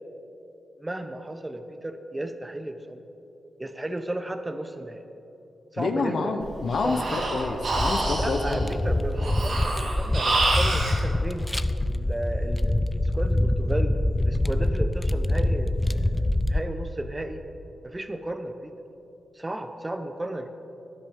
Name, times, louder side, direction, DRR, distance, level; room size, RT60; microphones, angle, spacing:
voice 1, 0.8-3.0 3.6-5.0 5.7-6.3 6.8-7.3 8.2-11.5 11.9-13.9 14.2-17.4 17.8-18.7 19.3-20.5, right 1 dB, 25° right, 8 dB, 0.9 m, -34 dB
voice 2, 5.8-8.7, left 4 dB, 70° left, 6 dB, 0.8 m, -28 dB
Breathing, 6.4-11.0, right 2 dB, 70° right, 1.9 m, -27 dB
sound 1, 7.7-16.6, left 1 dB, 20° left, 0.4 m, -25 dB
12.5 x 10.5 x 3.6 m, 2.9 s
supercardioid pair, 45°, 0 cm